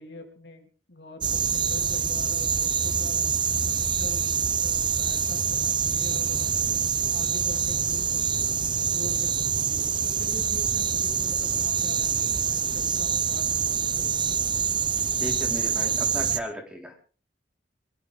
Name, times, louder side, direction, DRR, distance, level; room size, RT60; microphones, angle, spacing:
voice 1, 0.0-3.3 3.6-4.3 4.6-8.5 8.8-14.3, left 2 dB, 65° left, 3 dB, 3.1 m, -44 dB
sound 1, 1.2-16.4, right 7 dB, 25° right, 0.8 m, -25 dB
voice 2, 15.2-17.1, equal, 5° right, 0 dB, 4.3 m, -35 dB
24.0 x 14.5 x 3.6 m, 0.39 s
head